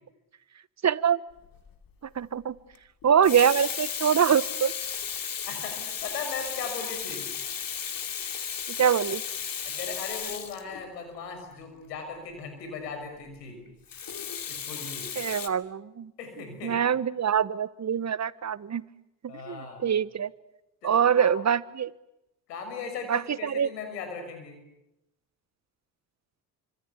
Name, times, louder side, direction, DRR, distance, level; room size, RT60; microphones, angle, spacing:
voice 1, 0.8-1.2 2.0-2.6 3.0-4.7 8.7-9.2 15.2-16.1 16.6-18.9 19.2-20.3 20.8-21.9 23.1-23.7, right 8 dB, 35° right, 18 dB, 1.2 m, -24 dB
Water tap faucet / Sink (filling or washing), 1.4-1.7 3.0-11.2 13.9-15.5, left 8 dB, 45° left, 2.6 m, -34 dB
voice 2, 5.4-7.3 9.6-13.6 14.5-15.1 16.2-16.8 19.3-19.8 20.8-21.3 22.5-24.6, left 5 dB, 90° left, 6 dB, 6.4 m, -38 dB
27.5 x 25.5 x 8.3 m, 0.87 s
hypercardioid pair, 55°, 47 cm